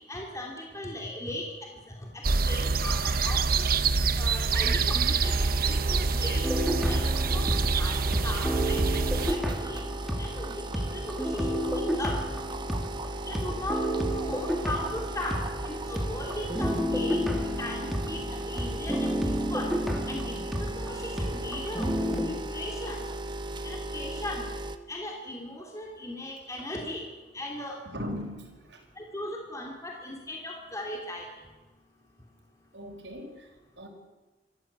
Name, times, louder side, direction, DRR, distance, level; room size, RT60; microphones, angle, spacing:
voice 1, 0.1-3.7 4.2-6.4 6.8-9.8 10.2-12.2 13.3-17.3 17.6-19.7 20.1-20.3 20.6-21.8 22.2-23.0 23.6-24.4 24.9-27.0 27.3-27.8 29.0-31.3, left 1 dB, 20° left, 0 dB, 3.1 m, -38 dB
sound 1, 2.2-9.3, right 4 dB, 55° right, 1.0 m, -26 dB
sound 2, 5.2-24.8, right 1 dB, 25° right, 1.2 m, -37 dB
sound 3, 6.4-10.5 10.7-22.3, equal, ahead, 2.6 m, -31 dB
voice 2, 27.8-28.8 32.7-33.5 33.8-33.9, equal, 85° right, 0 dB, 5.5 m, -39 dB
25.0 x 14.5 x 8.3 m, 1.2 s
head